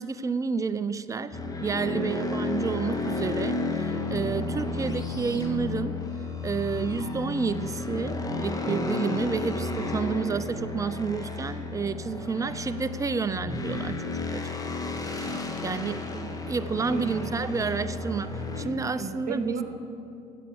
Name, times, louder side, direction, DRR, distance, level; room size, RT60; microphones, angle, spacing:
voice 1, 0.0-6.0 6.4-14.0 14.3-14.5 15.0-15.3 15.6-16.0 16.5-19.6, right 5 dB, 20° right, 14 dB, 0.6 m, -30 dB
sound 1, 1.3-18.6, left 3 dB, 20° left, 1.8 m, -32 dB
voice 2, 1.8-2.2 4.1-4.6 15.2-16.2 16.9-17.4 18.8-19.6, right 5 dB, 50° right, 5 dB, 2.0 m, -36 dB
15.5 x 8.2 x 7.0 m, 2.7 s
hypercardioid pair, 70°, 18 cm